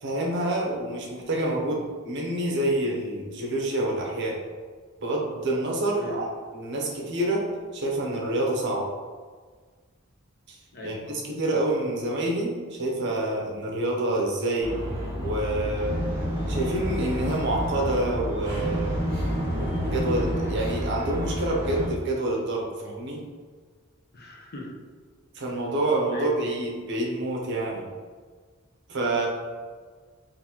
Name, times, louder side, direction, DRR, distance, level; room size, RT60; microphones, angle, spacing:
voice 1, 0.0-4.4 5.0-6.3 6.5-7.5 7.7-8.9 10.5-10.6 10.8-14.8 15.2-16.0 16.5-19.0 19.5-23.2 25.3-27.9 28.9-29.3, right 1 dB, 55° right, -2 dB, 0.7 m, -27 dB
voice 2, 10.7-11.0 24.1-24.7 25.4-25.5 26.1-26.4, left 2 dB, 45° left, -2 dB, 0.7 m, -38 dB
sound 1, 14.6-21.9, equal, 10° right, 1.1 m, -29 dB
3.9 x 2.6 x 2.9 m, 1.5 s
head